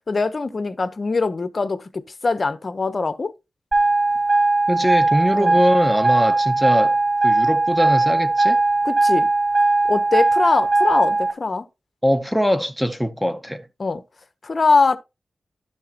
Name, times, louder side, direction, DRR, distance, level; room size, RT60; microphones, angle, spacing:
voice 1, 0.1-3.3 5.3-5.6 8.8-9.3 9.9-11.7 13.8-14.0 14.4-15.0, left 4 dB, 35° left, 0.9 m, -22 dB
sound 1, 3.7-11.3, right 2 dB, 25° right, 2.3 m, -19 dB
voice 2, 4.7-7.0 7.2-8.6 12.0-13.7, equal, ahead, 0.8 m, -22 dB
12.0 x 6.4 x 2.9 m
wide cardioid pair, 140°, 0 cm